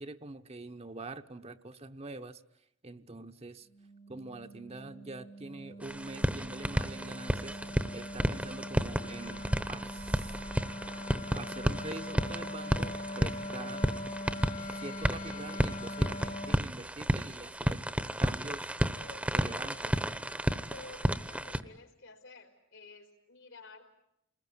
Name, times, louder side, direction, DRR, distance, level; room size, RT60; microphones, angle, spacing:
voice 1, 0.0-2.4 2.8-3.7 4.1-10.3 11.3-13.9 14.7-18.7 19.3-19.9, right 2 dB, 30° right, 8 dB, 1.0 m, -45 dB
Wind instrument woodwind instrument, 3.7-16.6, left 1 dB, 45° left, 1.6 m, -42 dB
sound 1, 5.8-21.6, equal, 5° right, 1.0 m, -32 dB
voice 2, 18.9-20.0 20.6-24.0, left 3 dB, 85° left, 5 dB, 4.5 m, -52 dB
28.5 x 20.5 x 9.6 m, 0.81 s
head